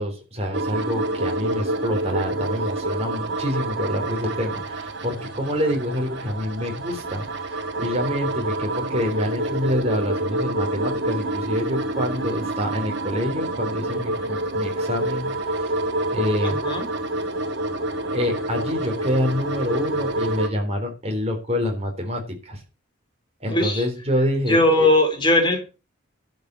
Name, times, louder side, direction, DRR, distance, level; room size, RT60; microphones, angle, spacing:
voice 1, 0.0-15.7 16.1-16.6 18.1-22.6 23.4-24.9, left 1 dB, 30° right, 3 dB, 3.9 m, -27 dB
sound 1, 0.5-20.5, right 2 dB, 60° right, 1.9 m, -27 dB
voice 2, 16.4-16.9 23.5-23.8 24.5-25.6, left 1 dB, 25° left, 4 dB, 3.2 m, -19 dB
12.0 x 5.8 x 7.9 m, 0.32 s
head